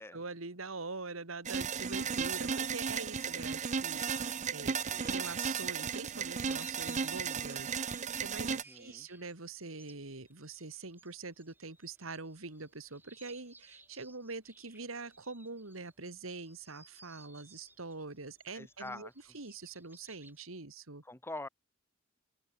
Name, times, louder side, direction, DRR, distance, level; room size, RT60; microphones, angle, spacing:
voice 1, 0.1-4.8 5.0-21.0, right 3 dB, 75° right, 2.4 m, -44 dB
sound 1, 1.5-8.6, right 6 dB, 35° right, 0.6 m, -35 dB
voice 2, 4.7-5.3 8.5-9.1 18.5-19.1 21.1-21.5, left 2 dB, 10° left, 2.6 m, -45 dB
sound 2, 6.3-20.4, right 2 dB, 10° right, 4.7 m, -59 dB
head